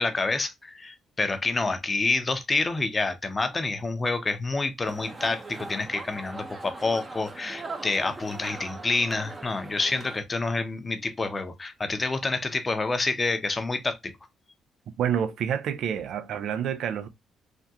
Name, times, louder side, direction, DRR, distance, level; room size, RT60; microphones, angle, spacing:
voice 1, 0.0-14.1, left 3 dB, 25° left, 0.6 m, -28 dB
sound 1, 4.8-10.2, right 3 dB, 30° right, 0.6 m, -40 dB
voice 2, 15.0-17.1, right 8 dB, 75° right, 0.4 m, -28 dB
3.5 x 2.2 x 2.7 m
cardioid pair, 90°, 0 cm